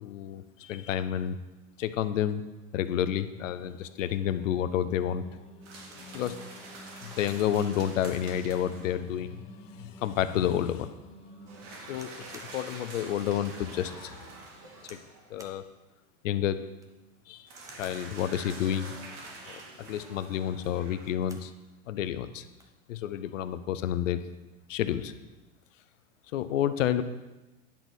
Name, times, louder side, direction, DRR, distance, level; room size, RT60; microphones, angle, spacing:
voice 1, 0.0-1.4 1.8-2.4 2.7-5.2 6.1-6.4 7.0-9.4 9.8-10.9 11.9-14.2 14.9-15.0 15.3-15.6 16.2-16.6 17.3-17.5 17.8-18.9 19.5-21.5 21.9-22.4 22.9-24.2 24.7-25.1 26.3-27.0, left 10 dB, 85° left, 12 dB, 0.7 m, -30 dB
Singing, 3.7-14.9, left 1 dB, 15° left, 1.1 m, -52 dB
sound 1, 5.6-9.2 11.5-15.3 17.5-21.4, right 2 dB, 70° right, 2.4 m, -46 dB
sound 2, 11.9-12.6 13.1-13.2 13.7-13.9 14.8-15.1 15.4-15.6 16.6-17.0 17.6-18.1 19.3-19.7 20.8-21.5 21.9-22.0 22.3-22.8 23.6-23.9, right 2 dB, 10° right, 0.7 m, -54 dB
10.0 x 4.1 x 6.1 m, 1.1 s
supercardioid pair, 125°, 37 cm